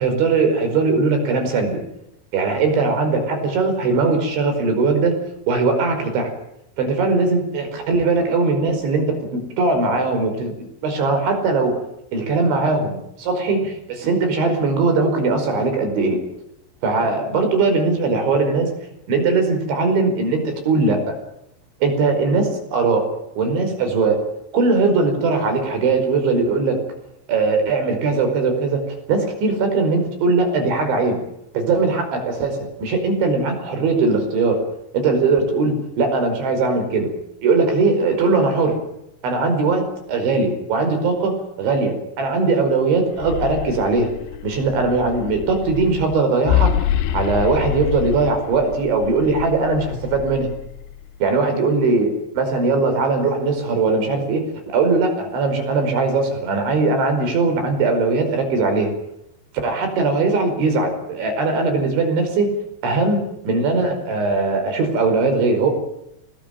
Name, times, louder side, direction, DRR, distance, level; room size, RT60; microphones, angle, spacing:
voice 1, 0.0-1.8 2.3-5.2 5.5-6.3 6.8-11.8 12.1-16.2 16.8-18.7 19.1-21.2 21.8-23.1 23.4-24.2 24.5-26.8 27.3-28.8 29.1-31.2 31.5-34.6 34.9-37.1 37.4-38.8 39.2-44.1 44.4-46.7 47.1-50.5 51.2-58.9 59.6-62.5 62.8-65.7, right 3 dB, 65° right, 6 dB, 7.3 m, -20 dB
sound 1, 43.0-51.2, left 11 dB, 75° left, 3.6 m, -26 dB
24.5 x 19.5 x 9.3 m, 0.82 s
omnidirectional pair, 5.7 m